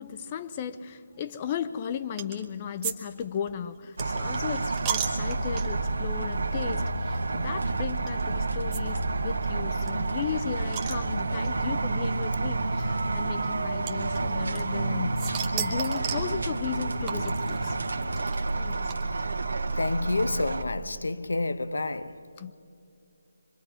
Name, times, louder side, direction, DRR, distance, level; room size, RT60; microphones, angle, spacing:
voice 1, 0.0-17.8 18.6-19.1 22.4-22.5, left 8 dB, 25° left, 0.5 m, -36 dB
sound 1, 2.2-2.5 2.8-2.9 3.2-5.9 6.5-6.7 6.9-7.0 8.1-8.2 8.7-8.8 9.1-9.2 9.4-9.5 9.9-11.5 12.4-12.5 13.9-14.9 15.2-16.3 17.1-19.3, right 7 dB, 15° right, 0.9 m, -35 dB
sound 2, 4.0-20.6, right 3 dB, 80° right, 1.3 m, -29 dB
voice 2, 19.7-22.3, left 2 dB, 85° left, 0.9 m, -29 dB
24.5 x 21.5 x 4.9 m
figure-of-eight pair, 165°, 0 cm